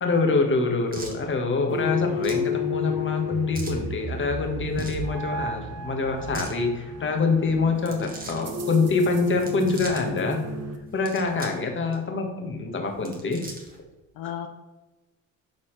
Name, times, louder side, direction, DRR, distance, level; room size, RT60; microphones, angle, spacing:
voice 1, 0.0-10.4 10.9-13.5 14.2-14.3, left 4 dB, 35° left, 3 dB, 1.6 m, -25 dB
sound 1, 0.9-1.2 2.2-2.5 3.5-3.8 4.7-5.1 6.1-6.6 7.7-8.4 9.3-10.0 10.9-11.6 11.9-12.0 12.9-13.8, right 2 dB, 25° right, 1.7 m, -39 dB
sound 2, 1.7-10.8, left 3 dB, 45° right, 1.1 m, -32 dB
voice 2, 11.3-11.7 14.1-14.5, left 10 dB, 75° left, 5 dB, 0.7 m, -35 dB
12.0 x 4.1 x 3.3 m, 1.1 s
cardioid pair, 105°, 35 cm